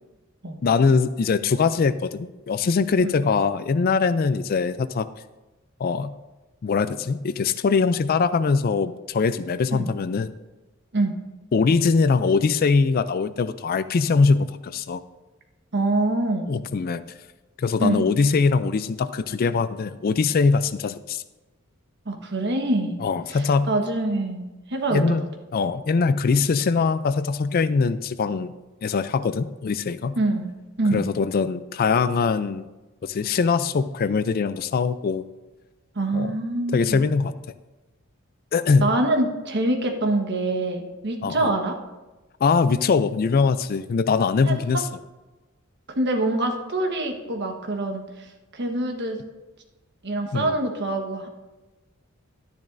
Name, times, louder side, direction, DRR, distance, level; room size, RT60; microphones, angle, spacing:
voice 1, 0.6-5.1 5.8-6.1 6.6-10.3 11.5-15.0 16.5-17.0 17.6-21.2 23.0-23.7 24.9-25.2 25.5-28.5 28.8-30.2 30.9-32.7 33.0-35.2 36.1-36.4 36.7-37.3 38.5-38.8 41.2-41.5 42.4-44.9 50.3-50.5, left 4 dB, 45° left, 14 dB, 0.4 m, -22 dB
voice 2, 15.7-16.5 17.8-18.0 22.0-23.0 23.3-25.2 30.2-30.5 30.8-31.1 35.9-37.0 38.8-41.8 44.5-44.8 45.9-48.3 48.5-49.2 50.0-51.3, right 2 dB, 55° right, 3 dB, 1.3 m, -25 dB
12.0 x 10.5 x 2.6 m, 1.1 s
head